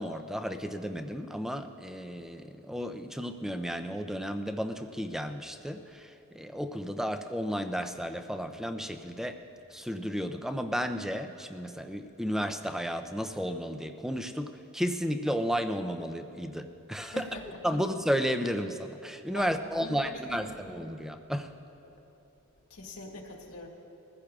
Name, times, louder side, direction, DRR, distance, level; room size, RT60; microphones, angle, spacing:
voice 1, 0.0-9.4 9.7-17.3 17.6-21.5, equal, ahead, 7 dB, 0.5 m, -33 dB
voice 2, 17.0-17.5 19.3-20.6 21.8-22.0 22.7-23.7, left 2 dB, 85° left, -1 dB, 1.9 m, -43 dB
22.0 x 15.0 x 2.4 m, 3.0 s
head